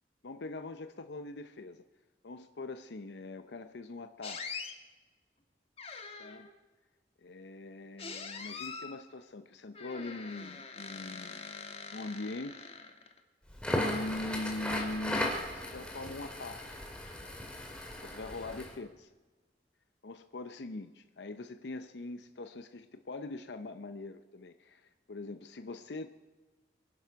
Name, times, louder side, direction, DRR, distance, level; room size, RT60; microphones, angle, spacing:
voice 1, 0.2-1.8 2.2-4.4 6.2-6.5 7.2-11.5 11.9-12.7 13.7-16.7 18.0-18.9 20.0-26.1, left 2 dB, 80° left, 9 dB, 0.6 m, -42 dB
sound 1, 4.2-4.7 5.8-6.5 8.0-9.0 9.7-13.2, left 5 dB, 35° left, 1.3 m, -44 dB
Crackle, 13.5-18.7, left 1 dB, 5° left, 2.2 m, -36 dB
24.5 x 11.0 x 4.7 m, 1.3 s
head